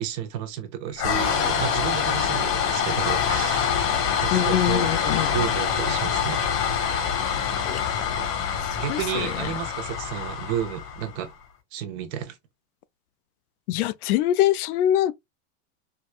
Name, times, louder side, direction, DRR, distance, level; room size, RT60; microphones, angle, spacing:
voice 1, 0.0-3.7 4.2-6.4 8.8-11.3 11.7-12.4, right 9 dB, 30° right, 0.5 m, -32 dB
sound 1, 1.0-11.2, left 7 dB, 90° left, 1.9 m, -25 dB
voice 2, 4.3-5.3 7.7-8.5 8.9-9.3 13.7-15.1, left 12 dB, 70° left, 0.5 m, -24 dB
4.6 x 2.2 x 2.3 m
supercardioid pair, 155°, 46 cm